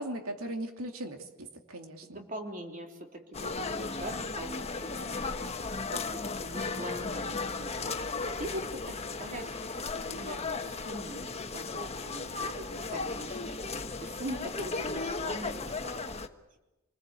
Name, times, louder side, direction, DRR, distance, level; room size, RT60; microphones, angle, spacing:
voice 1, 0.0-2.2, right 1 dB, 75° right, 5 dB, 2.7 m, -38 dB
voice 2, 2.0-5.3 5.9-15.7 16.1-16.2, right 1 dB, 40° right, 3 dB, 3.7 m, -42 dB
sound 1, 3.3-16.3, left 3 dB, 30° left, 1.4 m, -36 dB
27.0 x 20.5 x 8.5 m, 1.0 s
head